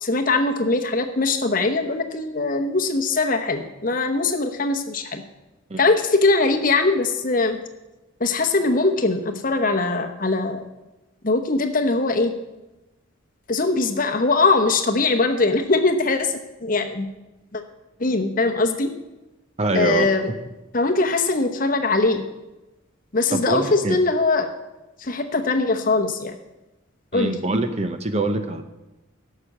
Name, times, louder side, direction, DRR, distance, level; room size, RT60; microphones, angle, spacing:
voice 1, 0.0-5.2 5.8-7.6 8.2-10.6 11.2-12.3 13.5-17.1 17.5-17.6 18.0-18.9 19.7-20.2 20.7-22.2 23.1-24.5 25.0-26.3 27.1-27.3, left 3 dB, 40° left, 6 dB, 1.0 m, -21 dB
voice 2, 19.6-20.1 23.3-24.0 27.1-28.6, right 2 dB, 30° right, 8 dB, 0.8 m, -24 dB
11.5 x 6.7 x 7.3 m, 1.0 s
head